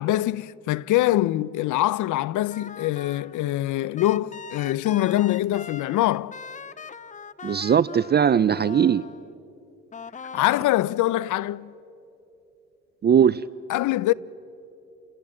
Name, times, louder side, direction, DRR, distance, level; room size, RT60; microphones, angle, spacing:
voice 1, 0.0-6.3 10.3-11.7 13.7-14.1, left 15 dB, 80° left, 0.5 m, -24 dB
sound 1, 2.5-3.4 4.0-9.3 9.9-10.9, left 6 dB, 25° left, 0.6 m, -41 dB
voice 2, 7.4-9.0 13.0-13.4, right 8 dB, 35° right, 0.5 m, -19 dB
29.0 x 17.5 x 7.5 m
cardioid pair, 90°, 30 cm